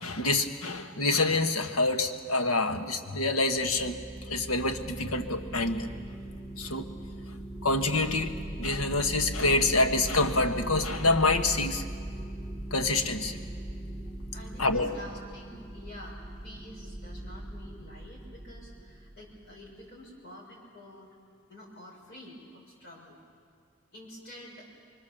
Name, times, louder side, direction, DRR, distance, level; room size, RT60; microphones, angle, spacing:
voice 1, 0.0-4.0 4.3-5.9 6.6-6.9 7.6-11.8 12.7-13.4 14.6-14.9, left 2 dB, 85° left, 6 dB, 1.5 m, -27 dB
sound 1, 3.4-19.7, right 1 dB, 10° right, 1.1 m, -40 dB
voice 2, 14.3-21.1 21.5-23.2 23.9-24.7, left 1 dB, 50° left, -3 dB, 6.3 m, -48 dB
26.0 x 24.0 x 7.2 m, 2.3 s
head